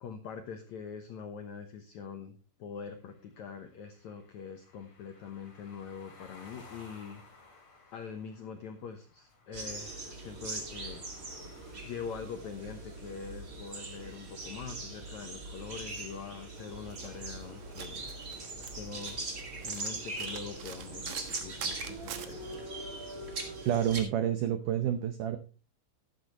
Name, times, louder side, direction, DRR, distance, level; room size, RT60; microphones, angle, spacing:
voice 1, 0.0-7.2 7.9-11.0 11.8-18.1 18.8-19.2 19.6-22.7, left 6 dB, 80° left, 7 dB, 1.6 m, -44 dB
sound 1, 2.8-14.9, left 3 dB, 35° left, 3.9 m, -58 dB
sound 2, 9.5-24.0, right 2 dB, 30° right, 1.7 m, -41 dB
Domestic sounds home sounds, 16.6-22.6, right 8 dB, 65° right, 2.1 m, -47 dB
voice 2, 23.7-25.4, right 10 dB, 85° right, 9 dB, 1.8 m, -29 dB
13.5 x 12.0 x 3.0 m, 0.32 s
omnidirectional pair, 4.8 m